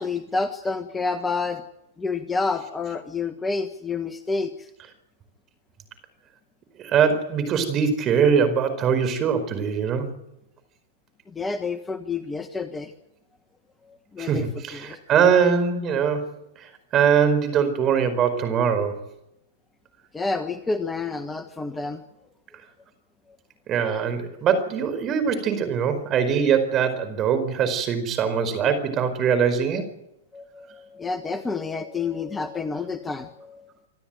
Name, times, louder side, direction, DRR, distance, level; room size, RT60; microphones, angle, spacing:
voice 1, 0.0-1.6 2.0-4.7 11.3-12.9 13.9-14.5 14.7-15.0 20.1-22.0 30.3-33.7, left 4 dB, 10° left, 9 dB, 1.3 m, -29 dB
voice 2, 6.8-10.1 14.2-16.3 16.9-19.0 23.7-29.9, right 7 dB, 30° right, 9 dB, 4.8 m, -22 dB
26.5 x 13.0 x 9.2 m, 0.85 s
hypercardioid pair, 115°, 0 cm